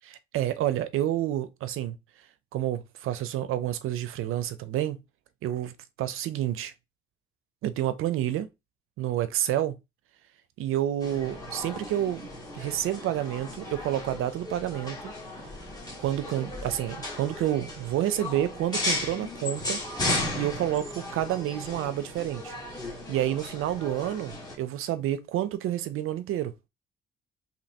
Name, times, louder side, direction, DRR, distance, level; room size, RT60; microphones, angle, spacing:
voice 1, 0.1-2.0 2.5-5.0 5.4-6.7 7.6-8.5 9.0-9.8 10.6-15.1 16.0-19.8 20.3-22.6 23.1-26.5, right 12 dB, 85° right, 0.6 m, -29 dB
sound 1, 11.0-24.5, left 2 dB, 20° left, 1.5 m, -35 dB
5.2 x 2.9 x 2.8 m
cardioid pair, 155°, 21 cm